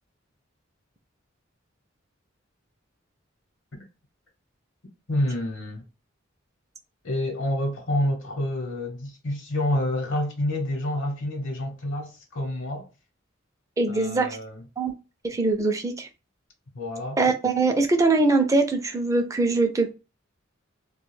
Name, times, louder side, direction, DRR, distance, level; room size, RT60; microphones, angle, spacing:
voice 1, 5.1-5.8 7.0-12.9 13.9-14.7 16.7-17.2, left 1 dB, 70° left, 0.8 m, -28 dB
voice 2, 13.8-14.4 14.8-14.9 15.2-16.1 17.2-19.9, right 3 dB, 15° right, 0.4 m, -22 dB
2.3 x 2.2 x 3.0 m
head